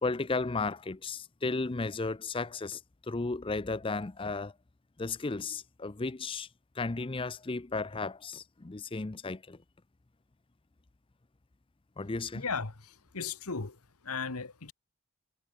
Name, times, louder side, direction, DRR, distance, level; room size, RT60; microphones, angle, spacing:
voice 1, 0.0-2.8 3.1-4.5 5.0-6.5 6.8-9.6 12.0-12.4, left 3 dB, 25° left, 0.5 m, -34 dB
voice 2, 12.3-13.8 14.0-14.7, left 5 dB, 85° left, 1.6 m, -36 dB
head